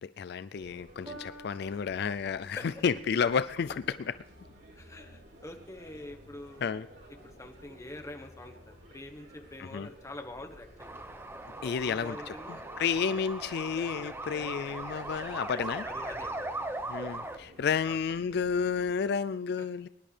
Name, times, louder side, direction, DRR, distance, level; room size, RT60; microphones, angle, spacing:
voice 1, 0.0-3.8 6.6-6.9 9.6-9.9 11.6-12.3 12.8-15.8 16.9-19.9, left 6 dB, 60° left, 14 dB, 0.4 m, -31 dB
sound 1, 0.5-18.9, equal, 90° right, 4.6 m, -54 dB
Piano, 1.0-7.6 8.4-8.5, right 1 dB, 30° right, 5.2 m, -54 dB
voice 2, 4.7-6.7 7.2-11.0 11.6-12.6 14.4-14.7 15.5-16.6 17.6-18.0 19.6-19.7, left 1 dB, 15° left, 4 dB, 1.3 m, -46 dB
sound 2, 10.8-17.4, right 2 dB, 15° right, 0.8 m, -39 dB
22.0 x 11.0 x 3.4 m, 0.91 s
head